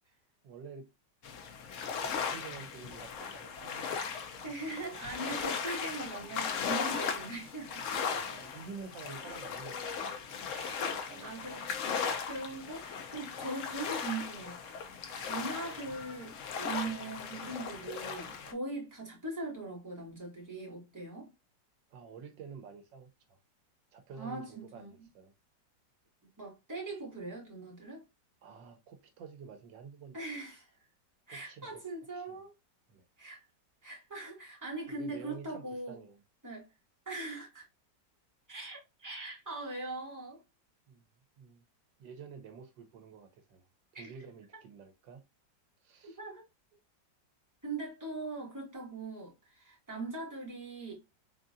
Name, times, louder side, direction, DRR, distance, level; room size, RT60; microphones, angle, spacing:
voice 1, 0.4-0.9 1.8-4.5 7.9-11.5 21.9-23.4 23.9-25.3 28.4-30.2 31.3-31.8 32.1-32.4 32.9-33.0 34.9-36.2 40.9-41.1 41.4-41.7 42.0-43.7 44.0-45.2 45.8-46.2, right 6 dB, 80° right, 1.4 m, -50 dB
sound 1, 1.2-18.5, left 6 dB, 60° left, 0.8 m, -37 dB
voice 2, 4.4-7.9 9.3-9.4 10.5-14.6 15.3-21.3 24.2-24.9 26.4-28.0 30.1-30.7 31.3-32.5 33.2-33.4 33.8-36.0 36.4-36.7 37.1-37.7 38.5-40.4 43.9-44.1 46.0-46.4 47.6-50.9, right 2 dB, 10° right, 1.9 m, -41 dB
4.0 x 3.8 x 2.5 m
omnidirectional pair, 2.0 m